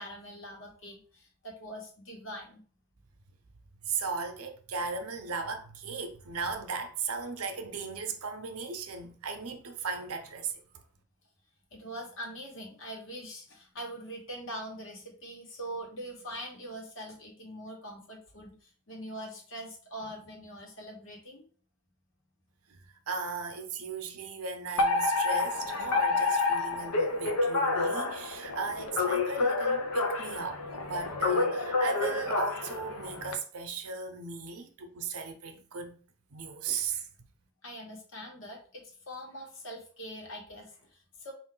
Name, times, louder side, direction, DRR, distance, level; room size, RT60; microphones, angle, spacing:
voice 1, 0.0-2.6 11.7-21.4 37.6-41.3, equal, 60° left, 1.2 m, -43 dB
voice 2, 3.8-10.6 22.7-35.9 36.3-37.1, right 5 dB, 80° right, 0.7 m, -36 dB
Alarm, 24.8-33.3, left 3 dB, 90° left, 0.7 m, -29 dB
4.5 x 2.5 x 3.7 m
head